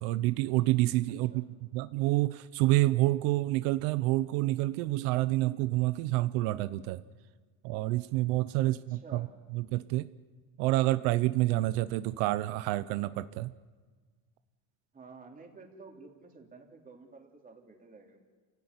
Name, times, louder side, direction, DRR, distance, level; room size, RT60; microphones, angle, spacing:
voice 1, 0.0-1.4 1.7-7.0 7.6-9.3 9.5-10.1 10.6-13.5, right 17 dB, 85° right, 13 dB, 1.0 m, -28 dB
voice 2, 8.7-9.3 14.9-18.2, right 4 dB, 20° right, 2 dB, 3.4 m, -51 dB
29.0 x 16.5 x 9.8 m, 1.4 s
cardioid pair, 155°, 43 cm